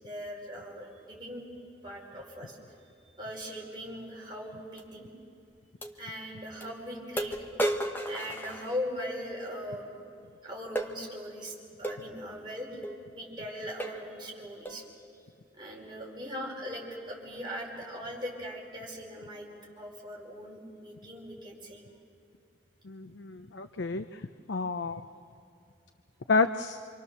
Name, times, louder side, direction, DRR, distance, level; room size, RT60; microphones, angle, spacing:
voice 1, 0.0-1.4 1.8-2.6 3.2-5.1 6.0-7.6 8.0-9.9 10.4-12.8 13.1-14.8 15.5-19.5 19.8-21.8, equal, 25° right, -3 dB, 5.1 m, -40 dB
sound 1, 4.8-4.9 5.8-5.9 6.6-6.7 7.2-9.1 10.8-11.0 11.8-12.0 12.8-13.0 13.4-13.5 13.8-14.1 14.7-14.9, right 1 dB, 10° left, 1.3 m, -33 dB
voice 2, 22.9-24.0 24.5-25.0 26.3-26.8, left 4 dB, 80° left, 8 dB, 0.7 m, -29 dB
26.5 x 26.5 x 6.8 m, 2.5 s
head